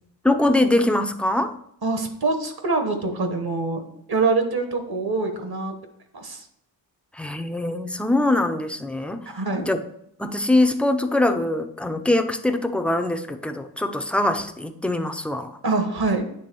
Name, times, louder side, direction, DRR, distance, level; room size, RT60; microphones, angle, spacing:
voice 1, 0.2-1.6 7.1-9.3 9.6-9.8 10.2-15.6, left 1 dB, 5° left, 7 dB, 0.5 m, -23 dB
voice 2, 1.8-5.7 6.1-6.5 9.3-9.7 15.6-16.2, right 3 dB, 50° right, 6 dB, 1.3 m, -25 dB
9.2 x 3.4 x 4.5 m, 0.74 s
cardioid pair, 70°, 46 cm